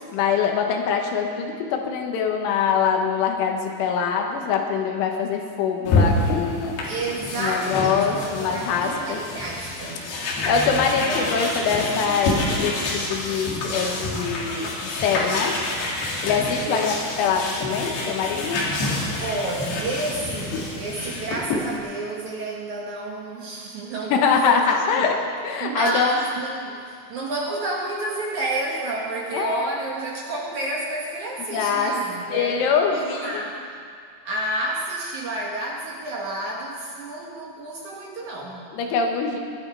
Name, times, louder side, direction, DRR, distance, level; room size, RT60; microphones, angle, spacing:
voice 1, 0.1-6.8 7.4-9.2 10.5-15.6 16.2-18.6 24.1-25.2 25.4-26.2 29.3-29.7 31.5-31.9 32.3-33.5 38.7-39.4, left 6 dB, 85° left, 3 dB, 3.7 m, -23 dB
sound 1, 5.9-21.8, left 2 dB, 60° left, 4.0 m, -27 dB
voice 2, 6.8-10.1 11.0-11.9 16.6-16.9 19.2-24.6 24.9-25.1 25.6-33.7 34.3-38.7, right 2 dB, 65° right, -2 dB, 1.9 m, -30 dB
22.0 x 11.5 x 4.7 m, 2.2 s
omnidirectional pair, 5.5 m